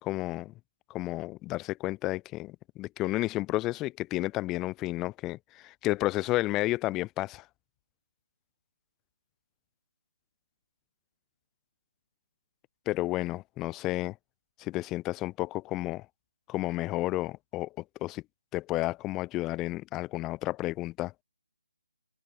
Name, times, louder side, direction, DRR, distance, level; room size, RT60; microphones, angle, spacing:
voice 1, 0.0-0.5 0.9-7.5 12.9-14.2 14.6-16.1 16.5-17.7 18.0-18.2 18.5-21.1, left 18 dB, 15° left, 5.7 m, -31 dB
figure-of-eight pair, 150°, 0 cm